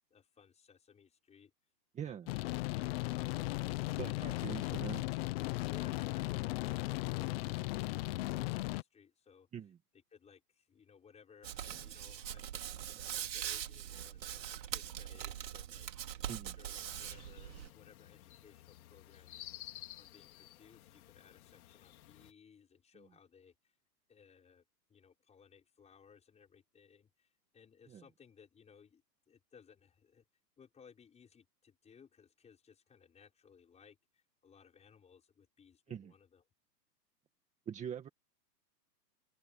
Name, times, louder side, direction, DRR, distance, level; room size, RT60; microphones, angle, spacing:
voice 1, 0.1-1.5 2.0-2.4 2.7-3.5 3.9-4.5 5.6-9.5 10.1-12.6 13.0-15.9 16.5-19.5 20.0-23.5 24.1-24.6 24.9-30.2 30.6-36.4, left 6 dB, 15° left, 5.7 m, -61 dB
voice 2, 1.9-2.3 4.0-5.1 9.5-9.8 16.2-16.6 27.9-28.0 35.9-36.1 37.7-38.1, right 8 dB, 15° right, 1.8 m, -43 dB
sound 1, 2.3-8.8, left 20 dB, 35° left, 1.1 m, -36 dB
Hands, 11.4-17.7, right 10 dB, 80° right, 3.5 m, -42 dB
sound 2, 16.8-22.3, left 14 dB, 55° left, 3.1 m, -54 dB
open air
hypercardioid pair, 150°, 49 cm